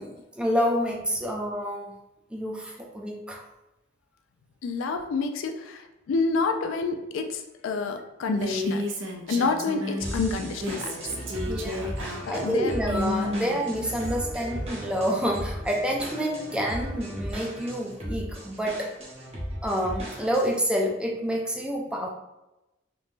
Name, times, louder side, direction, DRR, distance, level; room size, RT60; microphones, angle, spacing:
voice 1, 0.0-1.8 2.3-3.4 11.5-18.9 19.6-22.1, equal, 5° right, 0 dB, 0.3 m, -28 dB
voice 2, 4.6-8.8 9.3-11.3 12.3-12.7, left 4 dB, 85° left, 6 dB, 0.3 m, -28 dB
Female speech woman speaking, 8.2-10.1 10.5-14.2, left 1 dB, 75° right, 0.5 m, -32 dB
sound 1, 10.0-20.6, equal, 30° right, 0.7 m, -36 dB
3.1 x 2.2 x 2.5 m, 0.96 s
head